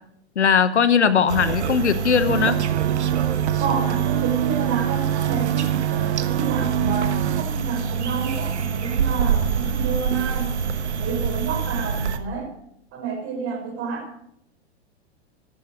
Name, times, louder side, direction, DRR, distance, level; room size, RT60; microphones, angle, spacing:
voice 1, 0.4-2.6, left 6 dB, 90° left, 12 dB, 1.1 m, -19 dB
sound 1, 1.3-12.2, right 6 dB, 80° right, 1.4 m, -26 dB
sound 2, 2.3-7.4, right 17 dB, 60° right, 0.4 m, -25 dB
voice 2, 3.6-10.5 11.0-12.5 12.9-14.1, right 5 dB, 40° right, 3 dB, 5.3 m, -30 dB
14.0 x 11.0 x 6.4 m, 0.75 s
hypercardioid pair, 100°, 33 cm